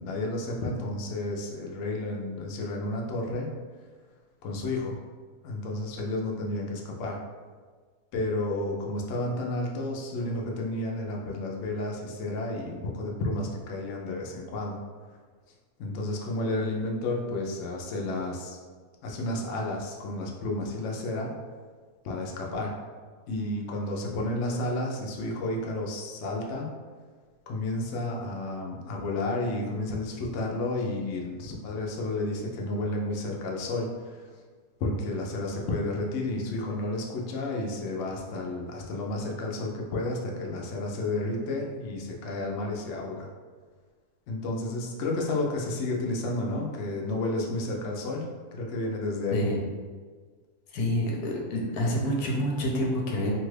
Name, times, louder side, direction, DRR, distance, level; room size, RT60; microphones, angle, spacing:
voice 1, 0.0-3.5 4.4-5.0 5.4-7.2 8.1-14.8 15.8-18.6 19.0-21.3 22.0-22.7 23.3-26.7 27.5-34.3 34.8-43.3 44.3-49.5, left 2 dB, 65° left, -1 dB, 0.8 m, -31 dB
voice 2, 50.7-53.3, equal, 90° left, -1 dB, 1.2 m, -27 dB
2.7 x 2.3 x 3.1 m, 1.5 s
omnidirectional pair, 1.6 m